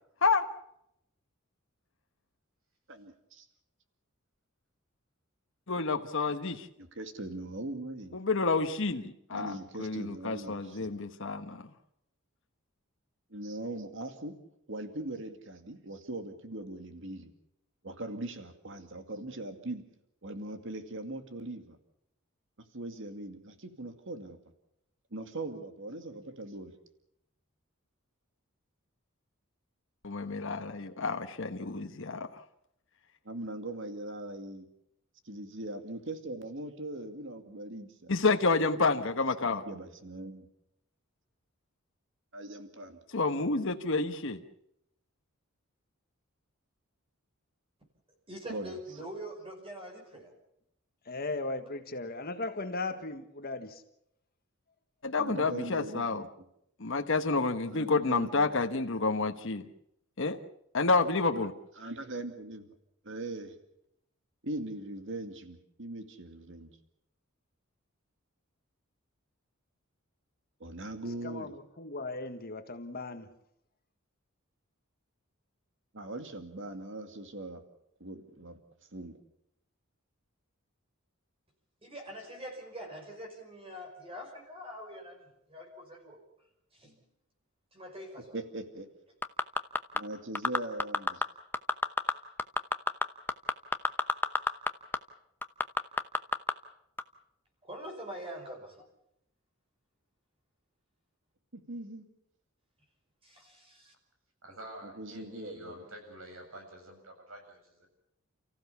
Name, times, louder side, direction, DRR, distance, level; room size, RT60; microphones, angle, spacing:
voice 1, 2.9-3.5 6.8-8.2 9.3-10.9 13.3-14.3 14.7-17.3 17.8-19.8 20.2-21.8 22.7-24.4 25.1-26.7 33.2-34.7 35.2-38.1 39.6-40.5 42.3-43.0 48.5-48.7 55.2-56.3 57.7-58.6 61.4-61.5 61.8-62.7 63.0-63.6 64.4-66.7 70.6-71.5 75.9-77.6 78.0-78.6 78.9-79.1 88.3-88.9 89.9-91.2 101.5-102.0 104.8-105.8, right 2 dB, 60° right, 2.3 m, -40 dB
voice 2, 5.7-6.7 8.1-11.6 30.0-32.3 38.1-39.6 43.1-44.4 55.0-56.2 56.8-59.7 60.2-60.4 60.7-61.5, left 3 dB, 65° left, 1.2 m, -29 dB
voice 3, 48.3-50.3 81.8-86.2 86.7-87.0 87.7-88.4 97.6-98.9 103.2-103.9, equal, 25° right, 5.4 m, -44 dB
voice 4, 51.0-53.8 71.2-73.3, left 2 dB, 45° left, 1.6 m, -37 dB
sound 1, 89.2-90.0 90.3-91.2 91.5-92.1 92.4-94.7 94.9-95.0 95.4-96.5 97.0-97.1, left 2 dB, 10° left, 0.9 m, -27 dB
voice 5, 104.4-107.9, right 1 dB, 80° right, 7.7 m, -48 dB
30.0 x 15.5 x 7.1 m
head